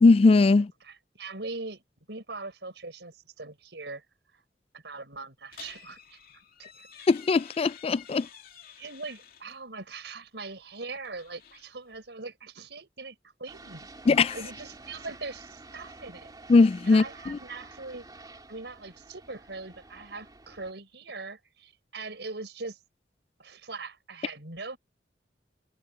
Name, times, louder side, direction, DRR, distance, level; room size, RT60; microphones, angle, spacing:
voice 1, 0.0-0.7 7.1-8.3 14.1-14.4 16.5-17.4, left 3 dB, 35° left, 0.3 m, -20 dB
voice 2, 0.5-1.8 2.1-4.0 4.3-4.4 4.7-6.2 6.6-6.9 8.8-13.9 14.3-16.3 16.9-18.0 18.5-22.8 23.4-24.8, right 3 dB, 80° right, 4.8 m, -41 dB
sound 1, 5.5-9.6 10.9-12.1, left 8 dB, 60° left, 2.6 m, -51 dB
sound 2, 13.5-20.7, right 3 dB, 25° right, 2.8 m, -49 dB
head